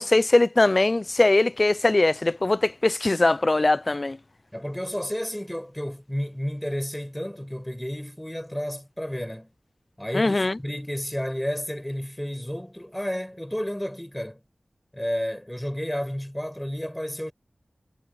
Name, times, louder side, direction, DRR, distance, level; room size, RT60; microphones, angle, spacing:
voice 1, 0.0-4.2 10.1-10.6, left 2 dB, 45° left, 0.5 m, -21 dB
voice 2, 4.5-9.5 10.0-14.4 14.9-17.3, equal, 10° left, 5.6 m, -31 dB
wide cardioid pair, 65°, 0 cm